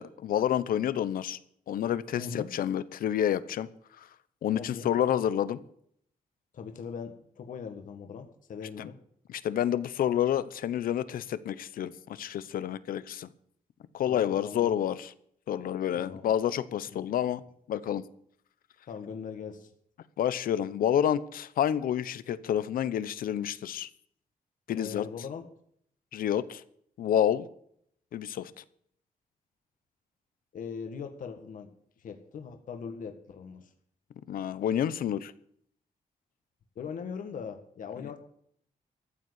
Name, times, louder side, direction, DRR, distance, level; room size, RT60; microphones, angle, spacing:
voice 1, 0.0-1.4 1.7-3.7 4.0-4.1 4.4-5.6 8.8-8.9 9.3-13.3 13.9-15.1 15.5-17.4 17.7-18.0 20.2-23.9 24.7-25.1 26.1-26.6 27.0-27.5 28.1-28.5 34.3-35.3, left 10 dB, 90° left, 16 dB, 0.9 m, -29 dB
voice 2, 2.2-2.5 4.5-4.9 6.5-9.0 14.1-14.8 15.9-16.3 16.9-17.0 18.9-19.7 24.7-25.5 30.5-31.7 32.0-33.7 36.7-38.2, left 6 dB, 65° left, 6 dB, 1.7 m, -40 dB
14.0 x 7.6 x 8.2 m, 0.65 s
wide cardioid pair, 130°, 15 cm